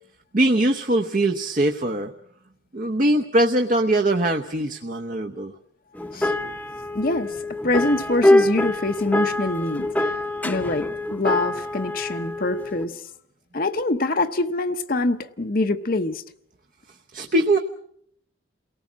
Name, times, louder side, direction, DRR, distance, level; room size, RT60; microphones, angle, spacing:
voice 1, 0.3-2.1 2.7-5.5 17.1-17.6, right 1 dB, 45° right, 5 dB, 0.9 m, -21 dB
sound 1, 5.9-12.9, left 1 dB, 10° left, 0.9 m, -24 dB
voice 2, 6.9-7.4 7.6-10.1 10.4-13.0 13.5-16.2, left 2 dB, 50° left, 8 dB, 0.9 m, -25 dB
29.0 x 18.5 x 7.4 m, 0.70 s
head